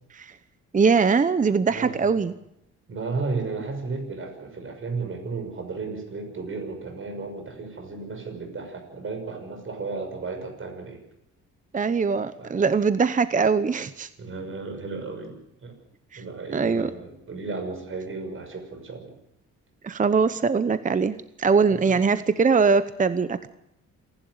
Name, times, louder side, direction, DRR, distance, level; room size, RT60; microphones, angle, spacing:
voice 1, 0.7-2.3 11.7-14.1 16.1-16.2 16.5-16.9 19.8-23.5, right 5 dB, 25° right, 13 dB, 0.8 m, -22 dB
voice 2, 1.7-2.2 2.9-11.0 12.4-12.6 14.2-15.7 16.1-19.1 21.7-22.0, right 4 dB, 45° right, 4 dB, 6.1 m, -34 dB
27.0 x 11.5 x 9.5 m, 0.81 s
cardioid pair, 90°, 30 cm